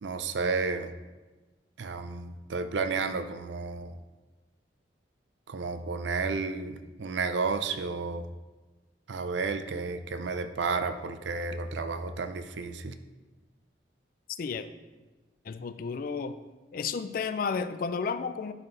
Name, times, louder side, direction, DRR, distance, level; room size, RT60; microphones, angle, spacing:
voice 1, 0.0-0.9 1.8-4.0 5.5-8.3 9.1-13.0, right 4 dB, 80° right, 10 dB, 0.5 m, -32 dB
voice 2, 15.5-16.4 16.7-18.5, left 5 dB, 50° left, 12 dB, 0.3 m, -32 dB
10.5 x 4.4 x 3.2 m, 1.2 s
head